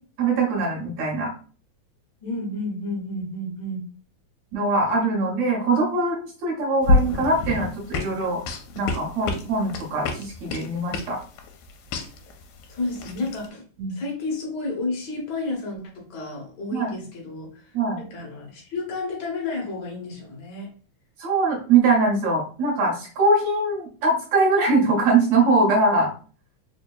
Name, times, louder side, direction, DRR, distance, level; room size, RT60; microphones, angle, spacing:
voice 1, 0.2-1.3 4.5-8.4 8.7-11.2 13.8-13.9 16.7-16.9 17.7-18.0 21.2-26.1, right 3 dB, 70° right, -1 dB, 1.8 m, -22 dB
voice 2, 2.2-3.8 12.7-13.6 14.0-20.7, left 2 dB, 55° left, -1 dB, 1.2 m, -31 dB
sound 1, 6.8-13.5, left 3 dB, 80° left, 2.0 m, -27 dB
4.6 x 2.7 x 2.2 m, 0.40 s
omnidirectional pair, 3.5 m